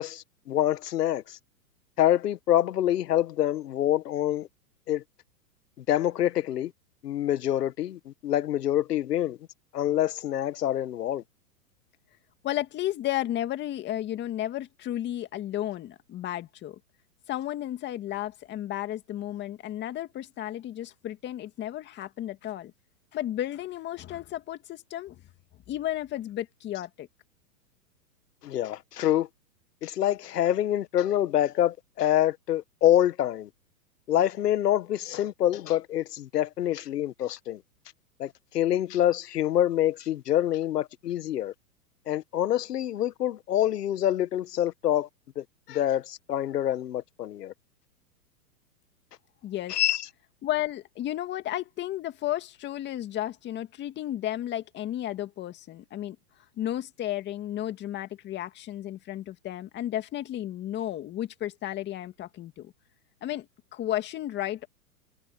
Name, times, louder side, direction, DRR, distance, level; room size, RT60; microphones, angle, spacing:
voice 1, 0.0-1.4 2.0-4.5 4.9-5.0 5.8-6.7 7.0-9.4 9.7-11.2 28.4-29.3 29.8-33.5 34.1-37.6 38.2-41.5 42.1-45.1 45.4-47.5 49.7-50.1, left 12 dB, 80° left, 1.4 m, -26 dB
voice 2, 12.4-16.8 17.3-22.7 23.1-25.2 25.7-27.1 49.4-49.8 50.4-56.2 56.6-62.7 63.2-64.7, left 13 dB, 20° left, 2.1 m, -33 dB
hypercardioid pair, 145°, 47 cm